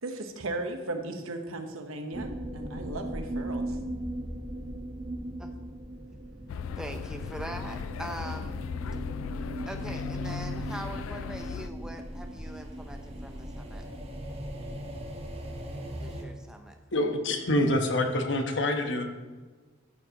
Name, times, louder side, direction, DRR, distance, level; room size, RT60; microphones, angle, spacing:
voice 1, 0.0-3.8, right 2 dB, 80° right, 5 dB, 1.1 m, -36 dB
sound 1, 2.1-16.2, right 1 dB, 30° right, 1.0 m, -38 dB
sound 2, 6.5-11.7, left 6 dB, 75° left, 0.3 m, -37 dB
voice 2, 6.8-8.6 9.7-13.9 16.0-16.8, right 1 dB, 5° right, 4 dB, 0.7 m, -42 dB
voice 3, 16.9-19.0, left 1 dB, 55° left, 4 dB, 1.1 m, -26 dB
13.5 x 6.9 x 3.0 m, 1.4 s
head